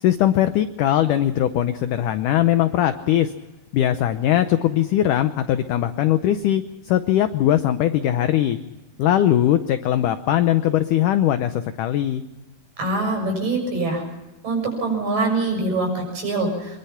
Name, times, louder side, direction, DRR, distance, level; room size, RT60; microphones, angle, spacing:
voice 1, 0.0-3.3 3.7-6.6 6.9-8.6 9.0-12.2, left 12 dB, 80° left, 10 dB, 1.9 m, -20 dB
voice 2, 12.8-14.0 14.4-16.8, right 2 dB, 55° right, 2 dB, 8.1 m, -24 dB
25.0 x 21.5 x 5.8 m, 1.1 s
omnidirectional pair, 4.6 m